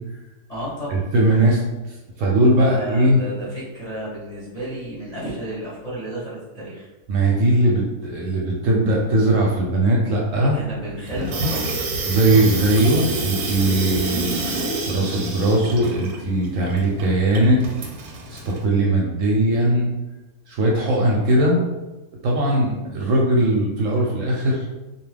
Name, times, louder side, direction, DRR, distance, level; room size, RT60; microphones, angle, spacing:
voice 1, 0.5-1.0 2.4-6.9 10.3-11.7, right 1 dB, 35° left, -9 dB, 0.7 m, -32 dB
voice 2, 1.1-1.6 2.2-3.2 7.1-10.6 12.1-14.3 14.9-17.6 18.3-19.9 20.5-21.6 22.2-24.7, right 1 dB, 70° right, -2 dB, 0.8 m, -19 dB
Water tap faucet / Sink (filling or washing), 11.1-18.6, right 2 dB, 85° right, 1.1 m, -28 dB
2.7 x 2.2 x 3.3 m, 1.1 s
omnidirectional pair, 1.6 m